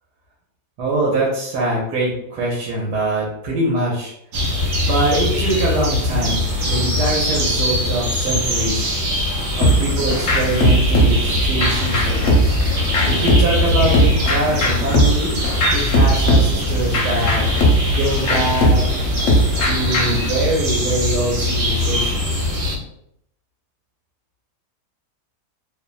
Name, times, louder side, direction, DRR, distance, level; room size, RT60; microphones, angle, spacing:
voice 1, 0.8-4.1 4.8-8.9 9.6-12.8 13.0-15.3 15.7-17.6 17.9-19.1 19.6-22.5, right 2 dB, 85° right, -3 dB, 1.2 m, -23 dB
sound 1, 4.3-22.8, left 1 dB, 70° right, 0.9 m, -22 dB
sound 2, 9.6-20.3, right 1 dB, 60° left, 0.7 m, -19 dB
2.8 x 2.1 x 2.3 m, 0.75 s
omnidirectional pair, 1.8 m